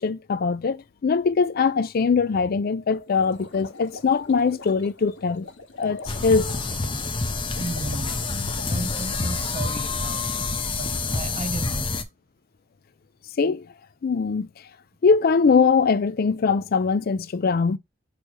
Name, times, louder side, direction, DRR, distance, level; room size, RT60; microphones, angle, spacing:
voice 1, 0.0-5.5 5.8-6.6 13.4-13.7 14.0-14.5 15.0-17.8, left 5 dB, 50° left, 0.4 m, -22 dB
sound 1, 2.9-9.4, left 2 dB, 75° left, 1.5 m, -44 dB
sound 2, 6.1-12.0, left 3 dB, 25° left, 0.8 m, -27 dB
voice 2, 7.6-8.2 8.7-10.3 10.7-12.0, right 3 dB, 35° right, 0.5 m, -35 dB
6.3 x 3.2 x 5.0 m
head